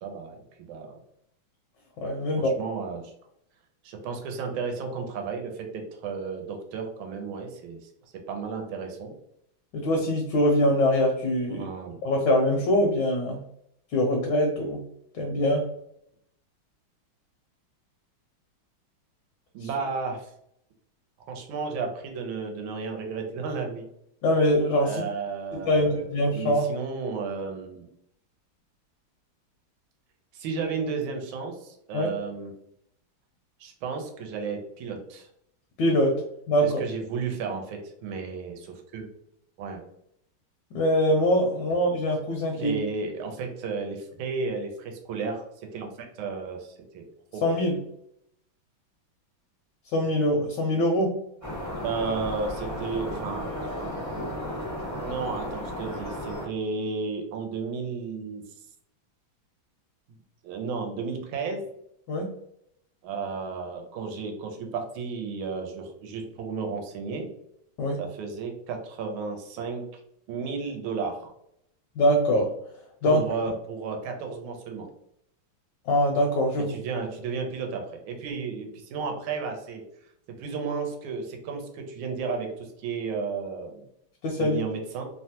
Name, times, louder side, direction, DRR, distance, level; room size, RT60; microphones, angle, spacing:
voice 1, 0.0-0.4 0.7-1.0 2.4-3.1 3.8-7.9 8.3-9.1 11.5-12.0 19.5-20.3 21.3-23.9 24.8-26.0 26.3-27.8 30.3-32.5 33.6-35.3 36.6-39.1 39.6-39.8 42.6-47.0 47.3-47.4 51.8-53.5 55.0-58.4 60.4-61.7 63.0-67.3 68.0-69.9 70.3-71.3 73.1-74.9 76.7-79.8 80.3-83.9 84.4-85.0, right 4 dB, 85° right, 3 dB, 1.4 m, -33 dB
voice 2, 2.0-2.5 9.7-11.7 12.0-13.4 13.9-14.8 15.1-15.6 19.6-19.7 24.2-25.0 25.5-26.7 31.9-32.1 35.8-36.8 40.7-42.8 47.4-47.8 49.9-51.2 62.1-62.3 67.8-68.0 72.0-72.5 73.0-73.2 75.9-76.8 84.2-84.6, equal, 75° left, 1 dB, 1.1 m, -23 dB
sound 1, 51.4-56.5, equal, 15° right, 0.5 m, -34 dB
3.3 x 2.1 x 2.7 m, 0.75 s
omnidirectional pair, 2.2 m